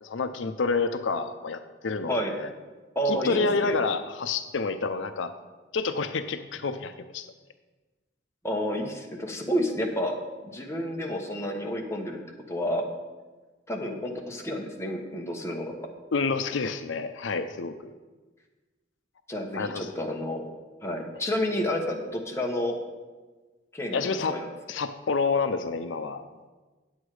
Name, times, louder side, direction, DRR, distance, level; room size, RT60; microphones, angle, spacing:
voice 1, 0.0-2.5 3.1-5.3 5.7-7.3 16.1-17.9 19.5-19.9 23.9-24.4 24.7-26.2, left 4 dB, 80° left, 10 dB, 0.5 m, -28 dB
voice 2, 2.9-3.8 8.4-10.2 10.4-12.2 12.5-12.8 13.7-15.7 19.3-20.4 20.8-22.8 23.7-24.5, equal, 15° left, 1 dB, 1.1 m, -30 dB
8.9 x 8.1 x 4.8 m, 1.3 s
head